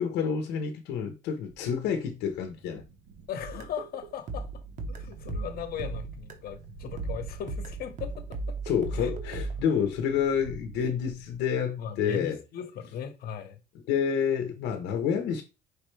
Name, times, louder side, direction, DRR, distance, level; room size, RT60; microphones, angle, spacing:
voice 1, 0.0-2.8 8.7-12.4 13.9-15.4, left 7 dB, 90° left, 0.8 m, -28 dB
sound 1, 1.5-11.4, right 5 dB, 80° right, 0.7 m, -47 dB
voice 2, 3.3-4.5 4.9-8.6 9.0-9.1 11.8-13.6, left 8 dB, 65° left, 1.0 m, -38 dB
sound 2, 3.4-6.6 7.0-9.6, right 3 dB, 45° right, 0.9 m, -37 dB
4.9 x 3.3 x 3.2 m
cardioid pair, 110°, 17 cm